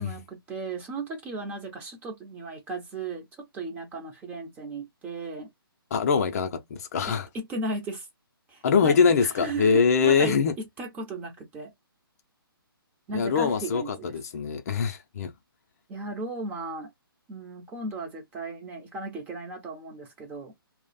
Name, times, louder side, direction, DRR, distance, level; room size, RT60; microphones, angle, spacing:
voice 1, 0.0-5.5 7.1-8.1 8.5-9.0 9.4-11.7 13.1-14.1 15.9-16.9 17.3-20.5, right 2 dB, 15° right, 0.6 m, -36 dB
voice 2, 5.9-7.3 8.6-10.6 13.1-15.3, left 5 dB, 40° left, 0.5 m, -23 dB
2.4 x 2.0 x 3.9 m
figure-of-eight pair, 140°, 12 cm